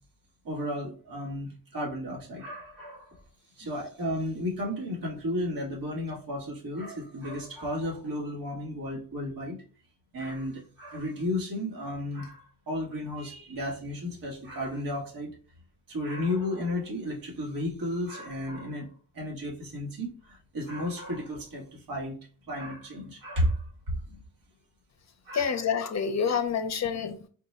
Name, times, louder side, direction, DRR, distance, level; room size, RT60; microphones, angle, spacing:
voice 1, 0.4-3.2 3.6-9.6 10.1-15.3 15.9-18.9 19.1-22.2 22.5-23.6 24.0-24.2 25.2-25.5, left 1 dB, 80° right, -2 dB, 1.5 m, -33 dB
voice 2, 25.3-27.3, left 6 dB, 50° left, 8 dB, 0.6 m, -28 dB
4.2 x 2.2 x 4.2 m, 0.41 s
wide cardioid pair, 115°, 34 cm